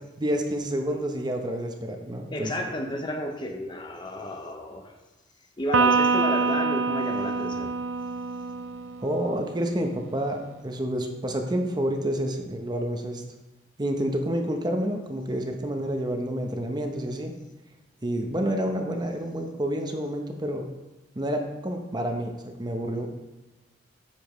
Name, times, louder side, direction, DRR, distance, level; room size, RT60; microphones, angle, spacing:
voice 1, 0.2-2.5 9.0-13.2 13.8-17.3 18.0-20.7 21.2-23.1, right 1 dB, 20° right, 4 dB, 0.7 m, -29 dB
voice 2, 2.3-4.9 5.6-7.7, left 1 dB, 25° left, 4 dB, 0.7 m, -32 dB
Electric guitar, 5.7-9.3, right 4 dB, 90° right, 0.5 m, -25 dB
9.6 x 7.1 x 3.1 m, 1.1 s
head